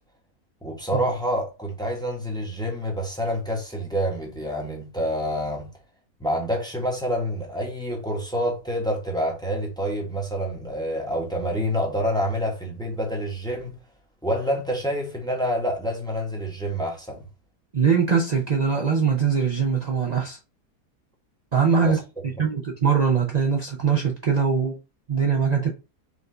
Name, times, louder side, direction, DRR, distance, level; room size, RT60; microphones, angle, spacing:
voice 1, 0.6-5.7 6.2-13.8 14.2-17.2 21.8-22.0, equal, 5° left, 0.9 m, -27 dB
voice 2, 17.7-20.4 21.5-22.0 22.4-24.8 25.1-25.7, right 6 dB, 50° right, 0.4 m, -22 dB
5.0 x 2.6 x 3.7 m
omnidirectional pair, 1.7 m